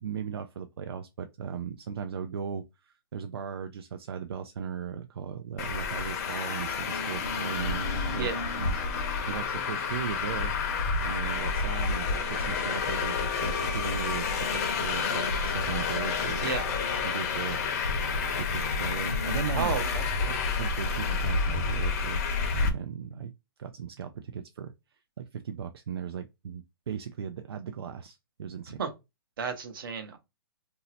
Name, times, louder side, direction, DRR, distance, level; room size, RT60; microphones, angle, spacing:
voice 1, 0.0-8.3 8.6-16.5 17.0-17.6 18.4-19.7 20.6-22.2 22.5-23.3 23.6-24.7 25.2-28.8, right 7 dB, 85° right, 0.4 m, -37 dB
Traffic noise roadway noise, 5.6-22.7, left 4 dB, 40° left, 0.7 m, -29 dB
voice 2, 19.5-20.3 28.8-28.9 29.4-30.2, right 6 dB, 60° right, 0.9 m, -32 dB
2.7 x 2.0 x 4.0 m
hypercardioid pair, 160°, 13 cm